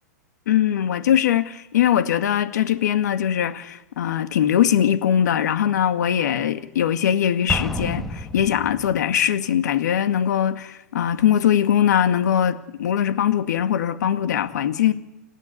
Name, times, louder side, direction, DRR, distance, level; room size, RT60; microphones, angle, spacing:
voice 1, 0.5-14.9, left 10 dB, 75° left, 2.1 m, -21 dB
Explosion, 7.5-9.1, equal, ahead, 1.4 m, -30 dB
30.0 x 12.5 x 8.6 m
hypercardioid pair, 150°, 9 cm